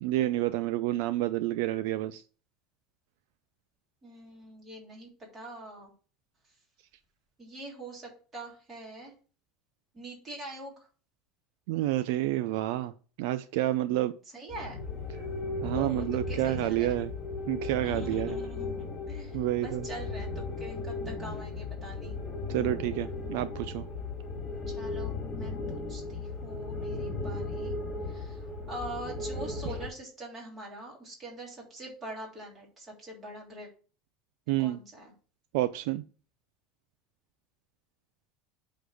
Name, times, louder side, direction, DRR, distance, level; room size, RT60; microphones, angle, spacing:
voice 1, 0.0-2.2 11.7-12.9 13.2-14.1 15.6-17.1 17.5-18.4 19.3-19.8 22.5-23.9 34.5-34.8 35.5-36.0, right 15 dB, 65° right, 0.4 m, -29 dB
voice 2, 4.0-5.9 7.4-9.1 9.9-10.7 14.3-14.8 15.6-17.0 17.8-22.2 24.7-27.7 28.1-33.7 34.6-35.1, right 1 dB, 20° right, 3.2 m, -44 dB
sound 1, 14.5-29.9, left 3 dB, 20° left, 2.3 m, -36 dB
8.3 x 3.9 x 6.3 m
cardioid pair, 175°, 0 cm